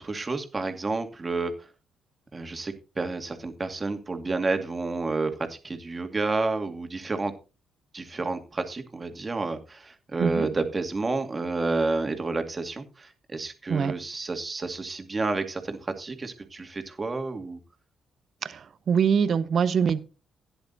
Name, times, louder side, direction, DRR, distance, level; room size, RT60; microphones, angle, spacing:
voice 1, 0.0-1.7 2.3-7.3 7.9-17.6, right 3 dB, 30° right, 6 dB, 2.3 m, -30 dB
voice 2, 18.4-20.0, right 7 dB, 55° right, 14 dB, 1.1 m, -24 dB
16.0 x 10.5 x 2.7 m, 0.31 s
hypercardioid pair, 45°, 0 cm